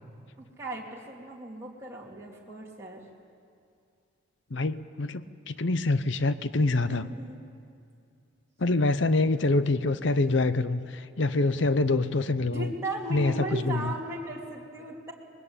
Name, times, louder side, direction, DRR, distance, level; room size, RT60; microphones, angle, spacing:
voice 1, 0.4-3.0 6.9-7.4 11.4-11.5 12.5-15.1, right 2 dB, 15° right, -4 dB, 2.7 m, -37 dB
voice 2, 4.5-7.1 8.6-12.7 13.1-13.9, left 2 dB, 60° left, 13 dB, 0.8 m, -25 dB
24.5 x 21.0 x 8.9 m, 2.4 s
head